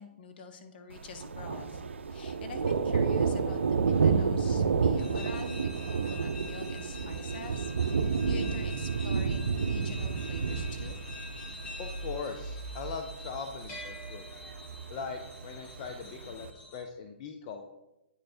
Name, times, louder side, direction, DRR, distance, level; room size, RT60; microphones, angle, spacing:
voice 1, 0.0-1.8 2.1-7.7 8.0-11.0, left 4 dB, 55° left, 6 dB, 0.9 m, -46 dB
Thunder, 0.9-16.5, right 5 dB, 90° right, 0.5 m, -31 dB
Tiger Hill Extract, 5.0-16.8, left 2 dB, 20° left, 1.4 m, -47 dB
voice 2, 11.8-14.2 14.9-17.7, left 5 dB, 40° left, 5 dB, 0.5 m, -40 dB
8.9 x 3.2 x 4.4 m, 0.93 s
hypercardioid pair, 135°, 6 cm